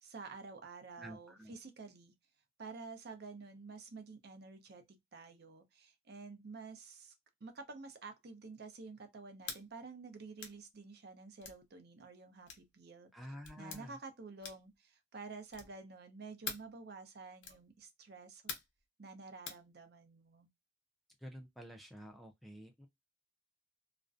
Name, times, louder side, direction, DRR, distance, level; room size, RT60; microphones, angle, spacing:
voice 1, 0.0-2.1 2.6-7.1 7.4-13.1 13.6-18.5 19.0-20.5, right 4 dB, 55° right, 0.6 m, -50 dB
voice 2, 1.0-1.5 13.1-14.0 21.2-22.9, equal, ahead, 0.3 m, -50 dB
sound 1, 9.4-9.6 10.4-10.6 11.4-11.6 12.5-12.7 13.4-13.8 14.4-14.7 15.5-15.8 16.4-16.7 17.4-17.6 18.5-18.8 19.5-19.6, left 5 dB, 70° left, 0.7 m, -45 dB
2.4 x 2.1 x 2.3 m
head